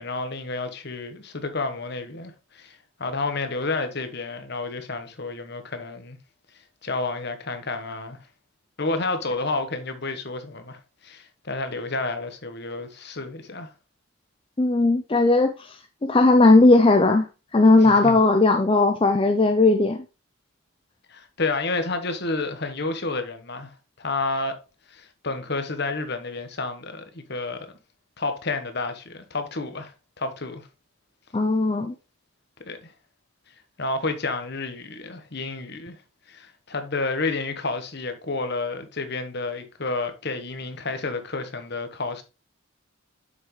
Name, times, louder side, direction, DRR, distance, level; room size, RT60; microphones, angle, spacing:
voice 1, 0.0-6.2 6.8-8.2 8.8-13.7 17.8-18.2 21.1-24.5 24.9-27.7 28.2-30.7 32.6-32.9 33.8-36.0 36.3-42.2, left 3 dB, 50° left, 1.2 m, -30 dB
voice 2, 14.6-15.8 16.0-17.3 17.5-20.0 31.3-31.9, left 2 dB, 25° left, 0.5 m, -17 dB
7.4 x 5.9 x 3.2 m
head